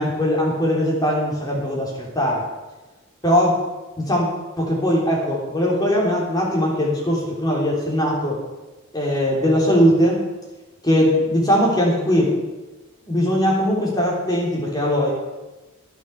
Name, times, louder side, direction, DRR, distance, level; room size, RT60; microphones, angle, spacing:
voice 1, 0.0-2.4 3.2-3.6 4.0-4.3 4.6-8.4 8.9-10.2 10.8-12.3 13.0-15.1, equal, 20° left, -3 dB, 3.4 m, -20 dB
12.0 x 8.4 x 6.9 m, 1.1 s
head